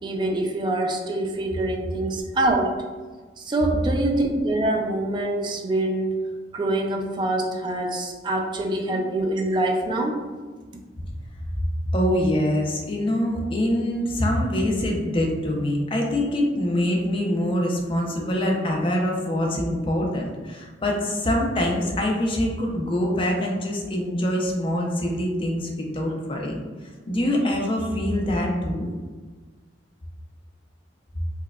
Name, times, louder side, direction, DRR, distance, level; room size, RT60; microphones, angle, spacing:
voice 1, 0.0-2.8 3.4-6.2 6.5-10.2, right 2 dB, 25° right, 1 dB, 0.3 m, -25 dB
voice 2, 11.9-28.9, left 1 dB, 30° left, 0 dB, 0.5 m, -24 dB
4.5 x 2.2 x 2.3 m, 1.4 s
head